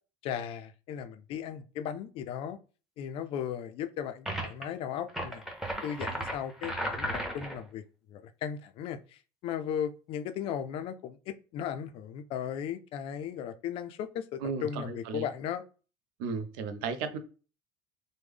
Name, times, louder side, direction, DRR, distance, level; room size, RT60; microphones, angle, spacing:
voice 1, 0.2-2.6 3.0-5.4 5.8-7.1 7.3-7.8 8.1-15.6, left 8 dB, 55° left, 0.4 m, -36 dB
sound 1, 4.3-4.6 5.1-7.6, equal, ahead, 0.8 m, -35 dB
voice 2, 14.4-15.2 16.2-17.2, right 5 dB, 80° right, 0.5 m, -34 dB
3.2 x 2.1 x 3.4 m
supercardioid pair, 120°, 11 cm